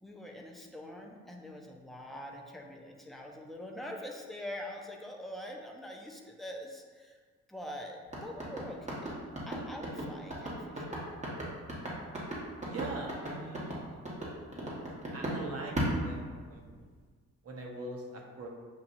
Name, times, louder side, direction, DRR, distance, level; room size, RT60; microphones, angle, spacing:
voice 1, 0.0-7.2 7.5-9.1 9.5-11.0, left 1 dB, ahead, 0 dB, 0.7 m, -44 dB
sound 1, 8.1-15.4 15.8-16.8, right 1 dB, 25° right, 1.4 m, -36 dB
voice 2, 12.7-14.0 15.1-16.6 17.4-18.5, right 2 dB, 50° right, 0 dB, 1.0 m, -42 dB
7.2 x 2.7 x 2.6 m, 1.5 s
cardioid pair, 90°, 30 cm